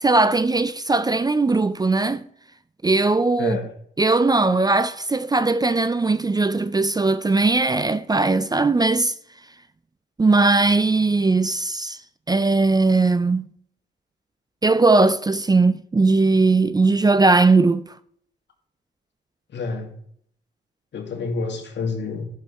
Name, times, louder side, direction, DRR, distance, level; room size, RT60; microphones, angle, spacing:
voice 1, 0.0-2.2 2.8-3.6 4.0-9.1 10.2-12.0 12.3-13.5 14.6-17.8, right 3 dB, 20° right, 0.4 m, -19 dB
voice 2, 19.5-19.9 20.9-22.2, left 4 dB, 65° left, 2.1 m, -28 dB
11.5 x 6.6 x 4.2 m
cardioid pair, 80°, 19 cm